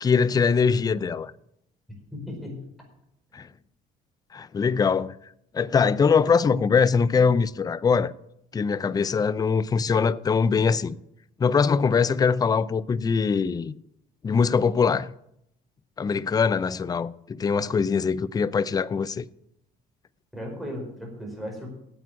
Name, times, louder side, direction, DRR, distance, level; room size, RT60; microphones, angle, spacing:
voice 1, 0.0-1.3 3.3-3.4 4.3-5.1 5.5-8.1 8.5-10.9 11.4-13.7 14.2-15.1 16.0-19.2, left 5 dB, 20° left, 0.4 m, -22 dB
voice 2, 2.1-2.6 20.3-21.7, equal, ahead, 5.0 m, -36 dB
9.0 x 8.3 x 8.3 m
cardioid pair, 110°, 17 cm